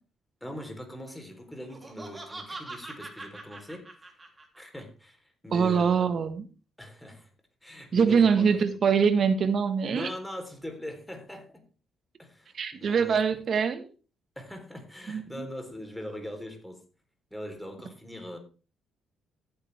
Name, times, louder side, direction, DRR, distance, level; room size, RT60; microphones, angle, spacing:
voice 1, 0.4-3.9 4.6-6.1 6.8-7.3 7.6-8.5 9.9-11.7 12.2-13.2 14.4-16.8 17.3-18.4, left 1 dB, 5° left, 3.7 m, -41 dB
Laughter, 1.6-4.8, right 2 dB, 25° right, 3.2 m, -43 dB
voice 2, 5.5-6.4 7.9-10.1 12.5-13.9 15.1-15.2, right 6 dB, 55° right, 1.5 m, -23 dB
14.5 x 8.7 x 3.5 m
cardioid pair, 90°, 0 cm